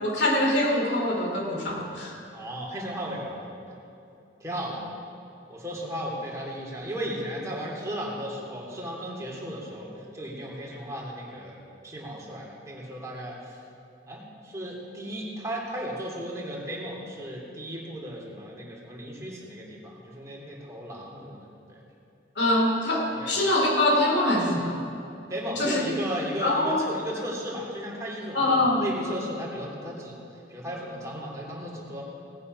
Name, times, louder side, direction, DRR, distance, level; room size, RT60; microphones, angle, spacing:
voice 1, 0.0-2.1 22.4-24.8 25.6-25.9 26.4-26.8 28.3-28.8, left 1 dB, 65° left, -1 dB, 2.7 m, -24 dB
voice 2, 2.3-3.8 4.4-4.8 5.5-13.6 14.1-21.8 23.2-23.3 25.3-30.2 30.5-32.0, equal, 15° right, -4 dB, 2.8 m, -35 dB
17.5 x 9.5 x 5.4 m, 2.7 s
head